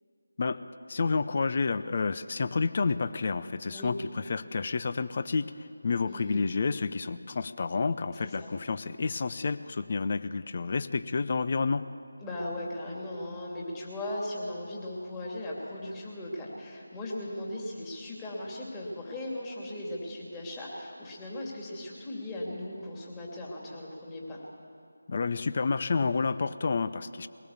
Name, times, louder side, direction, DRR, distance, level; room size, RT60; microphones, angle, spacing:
voice 1, 0.9-5.5 5.8-11.8 25.1-27.3, left 4 dB, 40° left, 13 dB, 0.6 m, -29 dB
voice 2, 6.1-6.4 8.2-8.6 12.2-24.4, left 1 dB, 15° left, -4 dB, 2.7 m, -38 dB
22.0 x 18.0 x 7.2 m, 2.5 s
figure-of-eight pair, 160°, 0 cm